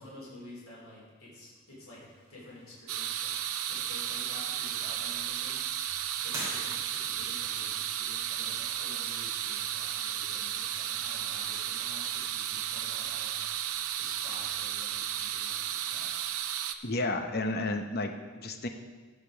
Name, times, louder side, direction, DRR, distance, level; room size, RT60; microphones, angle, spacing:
voice 1, 0.0-5.8 6.2-16.2, left 1 dB, 90° left, -6 dB, 3.6 m, -50 dB
sound 1, 2.0-10.4, right 1 dB, 15° right, 2.7 m, -49 dB
sound 2, 2.9-16.7, right 10 dB, 90° right, 0.5 m, -34 dB
voice 2, 16.8-18.7, left 2 dB, 45° left, 6 dB, 0.8 m, -32 dB
15.0 x 5.3 x 5.1 m, 1.5 s
head